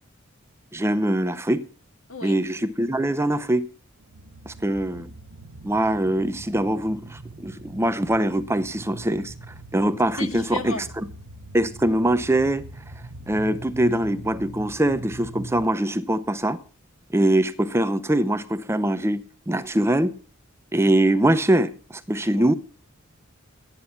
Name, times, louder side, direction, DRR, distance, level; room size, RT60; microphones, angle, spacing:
voice 1, 0.7-1.6 2.2-3.7 4.5-5.1 5.6-11.1 11.5-12.7 13.3-16.6 17.1-20.1 20.7-22.5, right 1 dB, 10° right, 0.7 m, -23 dB
sound 1, 4.0-15.7, right 2 dB, 90° right, 1.0 m, -41 dB
voice 2, 10.2-10.8 22.4-22.6, left 4 dB, 80° left, 1.9 m, -34 dB
17.0 x 9.8 x 5.7 m
head